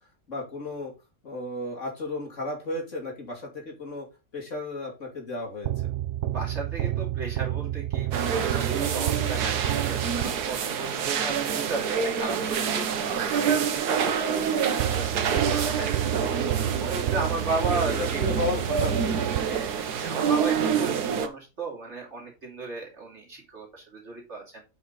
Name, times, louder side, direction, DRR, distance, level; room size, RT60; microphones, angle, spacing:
voice 1, 0.3-0.9 1.2-4.1 4.3-5.7 17.2-19.3, left 2 dB, 50° left, 0 dB, 2.9 m, -34 dB
sound 1, 5.6-10.8 14.8-20.0, right 11 dB, 65° right, 0.8 m, -30 dB
voice 2, 6.3-18.2 19.5-24.6, right 3 dB, 45° right, -1 dB, 3.0 m, -35 dB
sound 2, 8.1-21.3, right 7 dB, 80° right, 1.5 m, -27 dB
8.5 x 5.6 x 3.9 m, 0.27 s
omnidirectional pair, 1.7 m